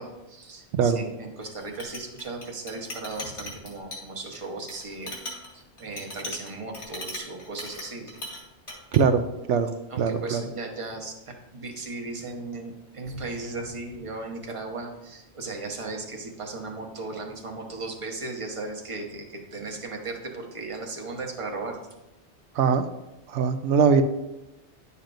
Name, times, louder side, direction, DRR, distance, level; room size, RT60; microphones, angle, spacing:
voice 1, 0.0-5.1 5.5-8.2 9.9-21.8, right 3 dB, 30° right, 1 dB, 1.0 m, -36 dB
Chink clink, 1.4-8.4 8.7-9.0, left 1 dB, 70° left, 2.2 m, -39 dB
voice 2, 8.9-9.2 9.5-9.7 10.0-10.4 22.6-22.8 23.3-24.0, right 6 dB, 90° right, 9 dB, 0.9 m, -21 dB
10.0 x 6.8 x 2.6 m, 0.95 s
omnidirectional pair, 1.2 m